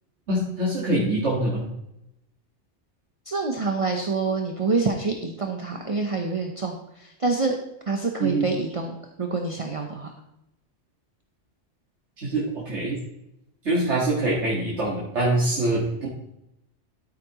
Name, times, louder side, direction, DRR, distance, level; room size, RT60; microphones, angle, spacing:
voice 1, 0.3-1.6 8.2-8.5 12.2-13.0 13.6-16.1, right 1 dB, 75° right, -5 dB, 2.2 m, -24 dB
voice 2, 3.3-7.5 7.9-10.1, right 4 dB, 30° right, 2 dB, 0.9 m, -27 dB
13.5 x 8.3 x 3.1 m, 0.86 s
omnidirectional pair, 1.2 m